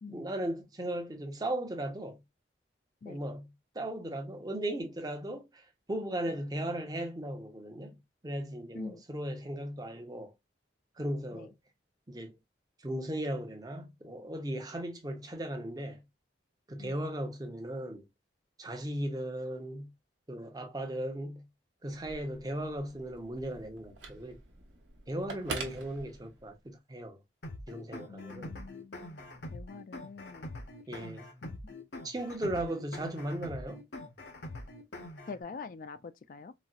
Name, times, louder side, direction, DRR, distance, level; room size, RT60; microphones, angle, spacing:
voice 1, 0.1-2.2 3.0-3.5 3.7-7.9 8.2-10.3 11.0-11.5 12.1-12.4 12.8-16.0 16.7-18.0 18.6-19.9 20.3-21.5 21.8-24.4 25.1-27.2 27.7-28.5 30.9-31.3 32.0-33.8, right 1 dB, 20° right, 0.6 m, -37 dB
Telephone, 21.9-26.7, right 3 dB, 85° right, 1.0 m, -45 dB
sound 1, 27.4-35.4, left 1 dB, 65° left, 0.8 m, -44 dB
voice 2, 28.1-29.2 29.5-30.5 31.4-31.6 35.3-36.5, left 4 dB, 45° left, 0.3 m, -45 dB
4.0 x 2.0 x 2.3 m
head